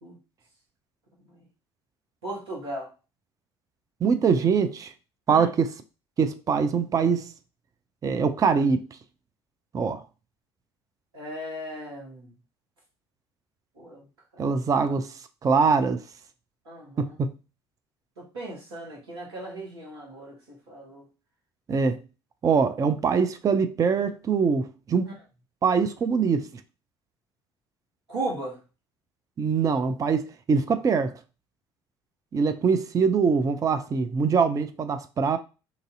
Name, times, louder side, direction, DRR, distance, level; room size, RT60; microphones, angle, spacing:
voice 1, 2.2-2.9 5.3-5.5 11.1-12.3 13.8-14.0 14.3-14.4 16.6-17.1 18.2-20.4 20.7-21.0 28.1-28.6, right 1 dB, 75° right, 1.4 m, -36 dB
voice 2, 4.0-4.9 5.3-5.7 6.2-7.3 8.0-8.9 9.7-10.0 14.4-15.1 15.4-16.0 17.0-17.3 21.7-22.0 22.4-25.1 25.6-26.5 29.4-31.2 32.3-35.4, right 5 dB, 25° right, 0.4 m, -23 dB
2.9 x 2.6 x 3.8 m
figure-of-eight pair, 55°, 14 cm